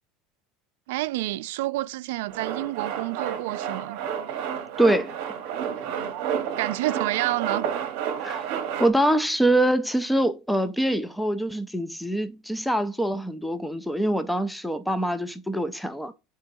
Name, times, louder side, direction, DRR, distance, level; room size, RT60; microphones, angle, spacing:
voice 1, 0.9-4.0 6.6-7.7, right 18 dB, 80° right, 0.3 m, -29 dB
Male speech man speaking, 2.3-8.9, right 8 dB, 55° right, 0.8 m, -30 dB
voice 2, 4.8-5.2 8.2-8.5 8.8-16.1, right 1 dB, ahead, 0.3 m, -24 dB
10.0 x 3.7 x 2.6 m
cardioid pair, 175°, 0 cm